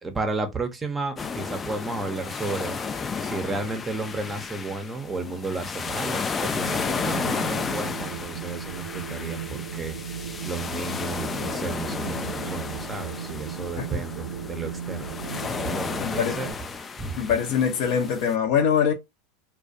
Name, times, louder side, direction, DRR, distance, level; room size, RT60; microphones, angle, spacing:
voice 1, 0.0-2.8 3.2-10.0 10.4-15.2 15.6-16.5 17.0-17.2, right 3 dB, 15° right, 0.6 m, -33 dB
sound 1, 1.2-18.3, left 5 dB, 25° left, 0.3 m, -33 dB
Wind, 6.5-16.5, right 8 dB, 80° right, 0.4 m, -36 dB
voice 2, 16.0-16.4 17.2-18.9, left 7 dB, 60° left, 0.6 m, -23 dB
2.3 x 2.1 x 2.6 m
hypercardioid pair, 100°, 0 cm